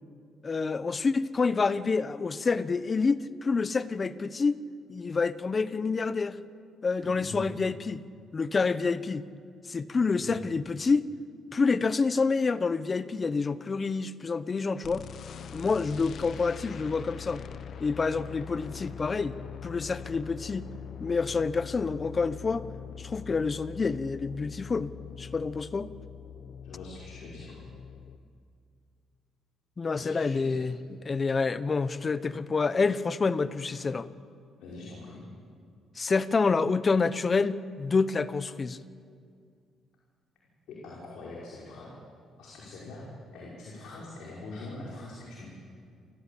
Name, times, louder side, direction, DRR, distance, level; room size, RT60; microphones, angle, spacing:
voice 1, 0.4-4.6 4.9-6.4 6.8-8.0 8.3-9.2 9.6-11.1 11.5-15.1 15.5-17.4 17.8-19.4 19.6-20.6 21.0-22.6 23.0-24.9 25.2-25.9 29.8-34.1 36.0-38.8, left 4 dB, 35° left, 15 dB, 1.0 m, -28 dB
voice 2, 7.0-7.5 10.2-10.3 26.6-27.6 29.9-30.6 34.6-35.2 40.7-41.9 42.4-43.0 43.3-45.5, left 2 dB, 75° left, -5 dB, 5.4 m, -43 dB
sound 1, 14.8-28.2, left 8 dB, 60° left, 1.1 m, -43 dB
28.5 x 15.0 x 8.6 m, 2.2 s
supercardioid pair, 75°, 0 cm